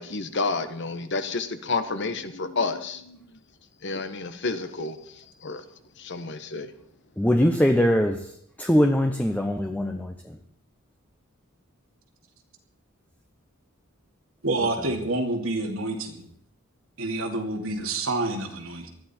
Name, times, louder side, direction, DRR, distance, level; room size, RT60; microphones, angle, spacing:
voice 1, 0.0-3.2 3.8-5.6 6.0-6.7, left 3 dB, 60° left, 10 dB, 1.2 m, -30 dB
voice 2, 7.2-8.2 8.6-10.1, equal, 5° left, 4 dB, 0.9 m, -21 dB
voice 3, 14.4-16.2 17.0-18.9, right 2 dB, 85° right, 3 dB, 2.5 m, -28 dB
19.5 x 13.0 x 4.4 m, 0.67 s
head